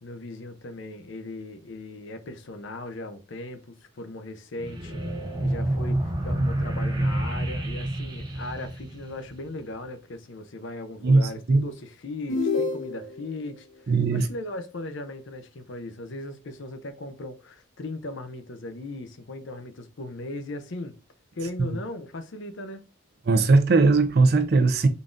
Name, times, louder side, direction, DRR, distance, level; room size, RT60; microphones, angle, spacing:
voice 1, 0.0-5.0 5.4-21.0 21.3-22.8, left 2 dB, 65° left, 0.6 m, -38 dB
sound 1, 4.6-9.6, right 1 dB, 20° right, 0.7 m, -28 dB
voice 2, 11.0-11.7 13.9-14.3 23.3-24.9, right 3 dB, 50° right, 0.4 m, -19 dB
sound 2, 12.3-13.3, left 4 dB, 85° left, 0.9 m, -27 dB
3.9 x 3.5 x 2.5 m
head